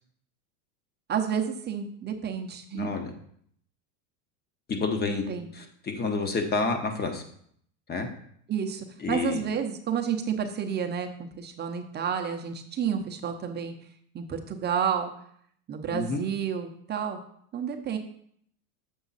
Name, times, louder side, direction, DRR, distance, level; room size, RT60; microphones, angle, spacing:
voice 1, 1.1-2.9 5.0-5.5 8.5-13.7 14.1-15.1 15.7-17.2 17.5-18.0, right 7 dB, 25° right, 4 dB, 0.8 m, -30 dB
voice 2, 2.7-3.1 4.8-5.2 5.5-7.2 7.9-8.1 9.0-9.4 15.9-16.2, left 4 dB, 20° left, 6 dB, 1.1 m, -29 dB
7.2 x 5.5 x 4.1 m, 0.65 s
supercardioid pair, 125°, 44 cm